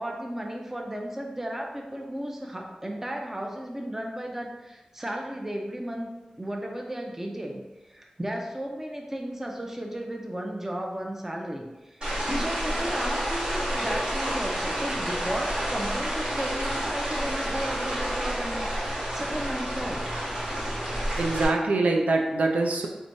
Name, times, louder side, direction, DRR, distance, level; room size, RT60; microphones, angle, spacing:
voice 1, 0.0-6.1 6.4-12.0 12.4-20.1, right 1 dB, 15° right, 1 dB, 0.5 m, -34 dB
sound 1, 12.0-21.4, equal, 40° right, 1.3 m, -29 dB
voice 2, 21.2-22.9, right 3 dB, 85° right, 1 dB, 0.4 m, -24 dB
3.4 x 3.2 x 2.6 m, 1.1 s
wide cardioid pair, 100°, 2 cm